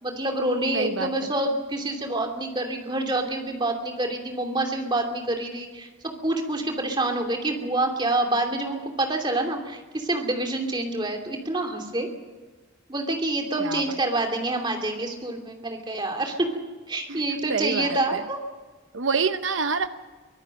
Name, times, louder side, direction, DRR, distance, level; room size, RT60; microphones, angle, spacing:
voice 1, 0.0-5.9 6.2-12.1 12.9-16.5 16.9-18.4, right 2 dB, 25° right, 3 dB, 2.8 m, -27 dB
voice 2, 0.7-1.1 13.6-13.8 17.1-17.2 17.5-18.2 18.9-19.9, right 5 dB, 80° right, 10 dB, 0.9 m, -26 dB
24.0 x 17.5 x 6.5 m, 1.4 s
head